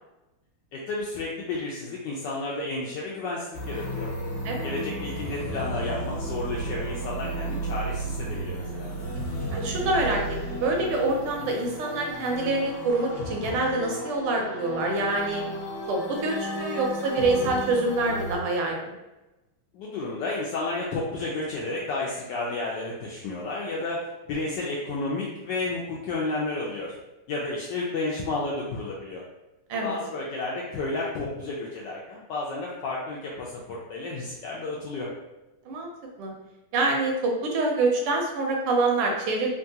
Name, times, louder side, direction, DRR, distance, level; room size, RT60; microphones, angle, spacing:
voice 1, 0.7-4.1 4.6-8.9 19.7-27.0 27.3-29.2 29.8-35.1, left 2 dB, 80° left, -4 dB, 1.0 m, -32 dB
Deep Space Horror Ambiance, 3.5-18.3, right 1 dB, 40° left, 1.2 m, -33 dB
voice 2, 9.5-10.2 10.5-15.4 15.9-18.9 29.7-30.0 35.7-35.9 36.2-36.3 36.7-39.5, right 2 dB, 85° right, 1 dB, 1.6 m, -26 dB
3.7 x 2.3 x 2.7 m, 1.0 s
omnidirectional pair, 2.4 m